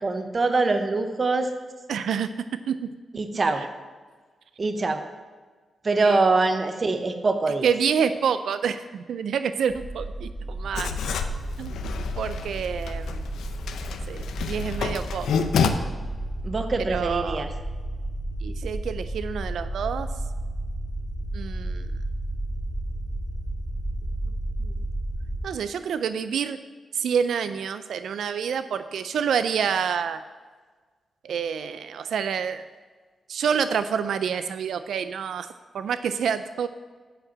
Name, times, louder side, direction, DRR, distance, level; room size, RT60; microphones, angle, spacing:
voice 1, 0.0-1.5 3.1-3.6 4.6-5.0 5.8-7.7 16.4-17.5, right 3 dB, 45° right, 7 dB, 0.8 m, -24 dB
voice 2, 1.9-2.3 2.7-2.9 6.0-6.2 7.6-11.1 11.6-11.7 12.2-13.2 14.1-15.3 16.9-17.4 18.4-20.1 21.3-21.9 24.6-24.7 25.4-26.6 26.9-30.2 31.2-32.6 33.3-35.5 35.7-36.7, right 7 dB, 80° right, 11 dB, 0.3 m, -27 dB
sound 1, 9.7-25.5, right 1 dB, 5° left, 1.7 m, -32 dB
Writing, 10.7-15.7, left 6 dB, 90° left, 0.6 m, -29 dB
8.8 x 5.0 x 7.3 m, 1.4 s
cardioid pair, 65°, 0 cm